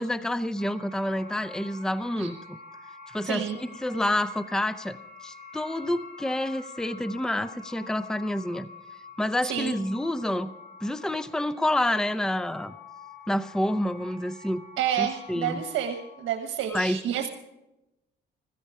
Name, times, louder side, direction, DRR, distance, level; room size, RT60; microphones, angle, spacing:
voice 1, 0.0-2.6 3.1-8.7 9.2-10.5 10.8-12.8 13.3-14.6 15.0-15.6 16.7-17.0, left 1 dB, 5° left, 14 dB, 0.6 m, -28 dB
sound 1, 0.6-16.5, left 4 dB, 45° left, 7.7 m, -47 dB
voice 2, 3.2-3.6 9.5-9.7 14.8-17.3, right 10 dB, 85° right, 4 dB, 1.2 m, -29 dB
15.5 x 15.0 x 4.8 m, 0.94 s
cardioid pair, 90°, 20 cm